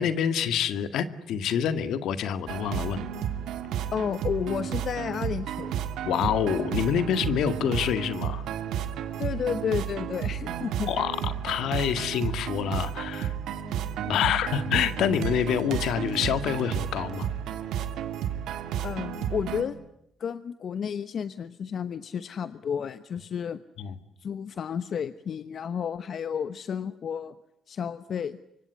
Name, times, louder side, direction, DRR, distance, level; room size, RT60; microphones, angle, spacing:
voice 1, 0.0-3.1 6.0-8.5 10.9-13.3 14.1-17.3 23.8-24.0, left 8 dB, 80° left, 11 dB, 2.0 m, -27 dB
sound 1, 2.5-19.6, right 9 dB, 85° right, 2.2 m, -32 dB
voice 2, 3.9-5.8 9.2-10.9 14.0-14.1 18.8-19.8 20.2-23.6 24.2-27.3 27.7-28.4, left 7 dB, 55° left, 13 dB, 1.0 m, -31 dB
25.0 x 24.0 x 9.7 m, 0.78 s
cardioid pair, 90°, 0 cm